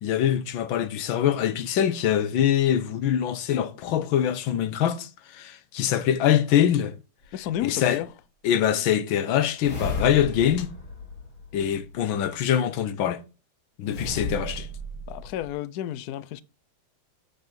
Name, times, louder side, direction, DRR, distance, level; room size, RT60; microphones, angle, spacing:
voice 1, 0.0-6.9 7.6-8.0 8.4-10.7 11.5-13.2 13.8-14.7, left 10 dB, 70° left, 1.5 m, -24 dB
sound 1, 7.2-7.3 9.6-12.0 13.8-15.5, left 2 dB, 50° left, 2.8 m, -34 dB
voice 2, 7.3-8.1 15.1-16.4, left 12 dB, 85° left, 0.8 m, -31 dB
8.0 x 5.5 x 4.5 m
omnidirectional pair, 2.3 m